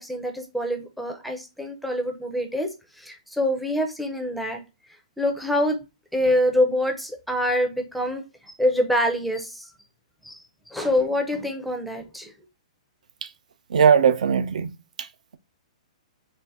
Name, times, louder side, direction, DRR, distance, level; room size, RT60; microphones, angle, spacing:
voice 1, 0.0-2.7 3.0-4.6 5.2-5.8 6.1-9.7 10.2-10.4 10.7-12.3, left 1 dB, ahead, 0.4 m, -25 dB
voice 2, 13.7-14.7 15.0-15.1, right 7 dB, 80° right, 0.4 m, -19 dB
4.1 x 2.4 x 3.4 m
hypercardioid pair, 170°, 4 cm